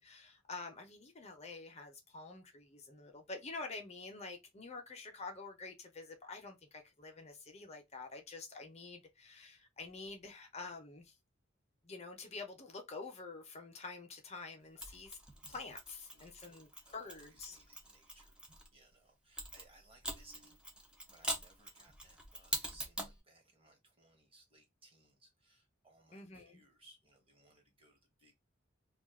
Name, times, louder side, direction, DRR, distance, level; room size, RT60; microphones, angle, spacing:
voice 1, 0.0-11.1 11.8-15.2 15.5-17.6 26.1-26.6, left 3 dB, 35° left, 0.7 m, -48 dB
Mechanisms, 14.8-18.7 19.4-23.2, right 1 dB, 5° right, 0.6 m, -44 dB
voice 2, 16.1-18.3 18.7-20.6 21.1-28.3, right 2 dB, 30° right, 1.2 m, -64 dB
2.4 x 2.4 x 3.6 m
head